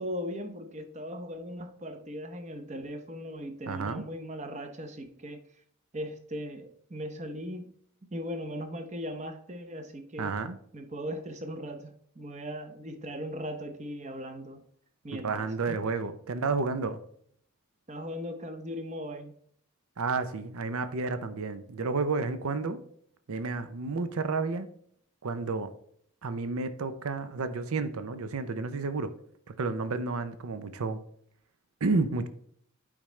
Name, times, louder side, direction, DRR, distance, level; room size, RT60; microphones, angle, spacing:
voice 1, 0.0-5.4 5.9-7.7 8.1-10.4 10.7-14.6 15.0-15.8 17.9-19.4, equal, 30° right, 7 dB, 0.7 m, -38 dB
voice 2, 3.7-4.0 10.2-10.6 15.1-17.0 20.0-22.8 23.3-24.7 25.2-25.7 26.2-29.1 29.6-31.0 31.8-32.3, right 4 dB, 80° right, 11 dB, 0.6 m, -31 dB
8.7 x 5.0 x 3.2 m, 0.64 s
head